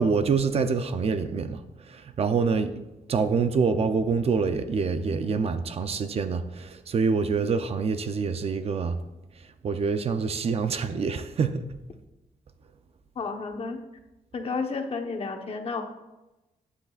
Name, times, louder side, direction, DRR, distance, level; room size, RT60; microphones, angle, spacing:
voice 1, 0.0-2.7 3.1-9.0 9.6-11.6, right 5 dB, 45° right, 9 dB, 0.6 m, -26 dB
voice 2, 13.1-13.8 14.3-15.8, left 4 dB, 45° left, 4 dB, 1.1 m, -31 dB
14.5 x 9.7 x 2.5 m, 1.0 s
wide cardioid pair, 145°, 14 cm